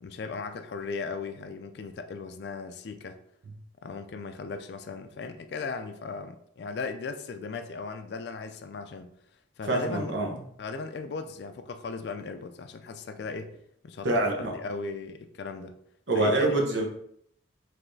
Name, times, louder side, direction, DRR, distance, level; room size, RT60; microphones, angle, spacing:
voice 1, 0.0-3.2 3.8-9.1 9.6-10.2 10.6-13.6 13.8-15.8 16.1-16.8, left 4 dB, 55° left, 8 dB, 0.3 m, -37 dB
voice 2, 9.7-10.4 14.0-14.6 16.1-16.9, right 2 dB, 70° right, 0 dB, 0.9 m, -25 dB
4.7 x 3.2 x 2.6 m, 0.71 s
head